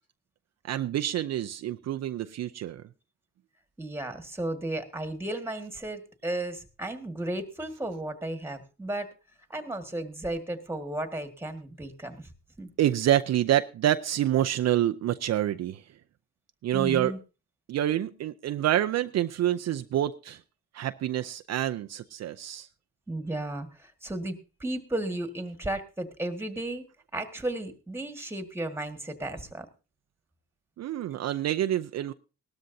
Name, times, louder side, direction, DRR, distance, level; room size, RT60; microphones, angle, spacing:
voice 1, 0.6-2.8 12.8-15.8 16.6-17.1 17.7-20.4 20.7-22.7 30.8-32.1, right 12 dB, 60° right, 8 dB, 0.5 m, -27 dB
voice 2, 3.8-9.1 9.5-12.3 12.6-12.7 16.7-17.2 23.1-26.8 27.1-29.7, right 1 dB, 10° right, 7 dB, 1.7 m, -34 dB
18.0 x 13.0 x 2.7 m, 0.31 s
cardioid pair, 90°, 30 cm